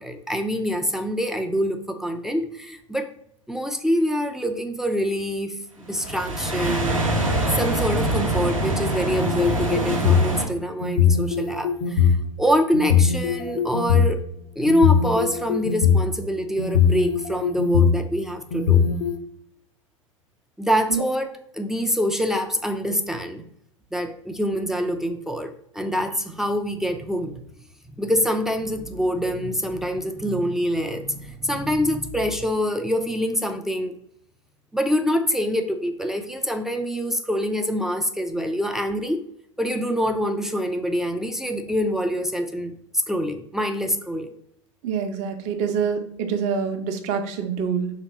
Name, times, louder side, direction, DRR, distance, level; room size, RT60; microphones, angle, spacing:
voice 1, 0.0-3.1 3.5-5.6 5.8-7.0 7.5-12.1 12.4-14.2 14.6-18.9 20.6-21.3 21.5-23.4 23.9-27.3 28.0-33.9 34.7-39.2 39.6-42.7 43.1-44.3, equal, 5° right, 5 dB, 0.3 m, -25 dB
sound 1, 5.9-10.5, right 1 dB, 90° right, 0.8 m, -24 dB
sound 2, 9.1-10.3 10.8-12.1 12.7-14.0 14.7-16.1 16.6-18.0 18.5-19.1, left 8 dB, 65° left, 0.6 m, -20 dB
voice 2, 44.8-47.9, right 6 dB, 45° right, 6 dB, 0.6 m, -26 dB
3.4 x 2.9 x 4.2 m, 0.71 s
figure-of-eight pair, 85°, 17 cm